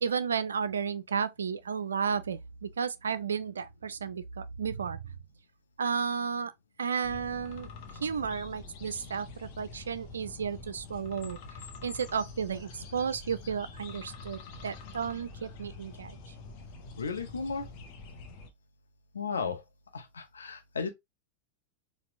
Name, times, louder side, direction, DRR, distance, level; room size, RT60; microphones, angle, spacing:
voice 1, 0.0-5.0 5.8-6.5 6.8-7.7 8.0-11.4 11.8-16.2, right 6 dB, 70° right, 0.3 m, -33 dB
sound 1, 7.0-18.5, left 4 dB, 45° left, 0.8 m, -46 dB
voice 2, 17.0-17.7 19.1-19.6 19.9-20.9, left 5 dB, 70° left, 0.8 m, -34 dB
4.2 x 2.3 x 2.5 m
figure-of-eight pair, 90°, 0 cm